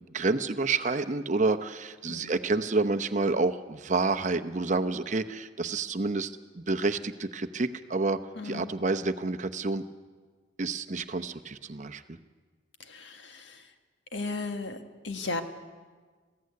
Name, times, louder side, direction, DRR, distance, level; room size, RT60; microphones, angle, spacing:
voice 1, 0.1-8.2 8.4-9.8 10.6-12.0, right 3 dB, 40° right, 10 dB, 0.8 m, -29 dB
voice 2, 2.1-2.4 8.3-8.7 12.8-13.7 14.1-15.4, left 3 dB, 75° left, 6 dB, 1.7 m, -36 dB
21.0 x 15.5 x 9.5 m, 1.5 s
head